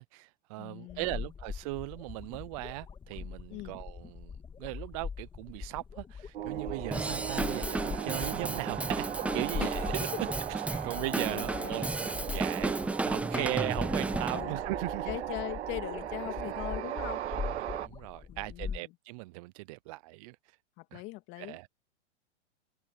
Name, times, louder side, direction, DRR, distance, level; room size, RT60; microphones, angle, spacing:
voice 1, 0.0-4.3 4.6-9.8 10.2-12.8 13.0-15.1 17.3-20.4 20.9-21.0 21.4-21.7, right 23 dB, 30° right, 0.5 m, -38 dB
voice 2, 0.6-1.3 3.5-3.8 9.6-10.2 10.7-11.9 13.3-13.7 14.3-14.6 15.1-17.2 18.3-18.9 20.8-21.6, left 20 dB, 35° left, 2.2 m, -41 dB
sound 1, 0.9-18.8, left 6 dB, 15° left, 3.0 m, -42 dB
sound 2, 6.3-17.9, right 12 dB, 70° right, 1.6 m, -38 dB
Drum kit / Drum, 6.9-14.4, right 2 dB, 5° right, 0.8 m, -34 dB
hypercardioid pair, 140°, 35 cm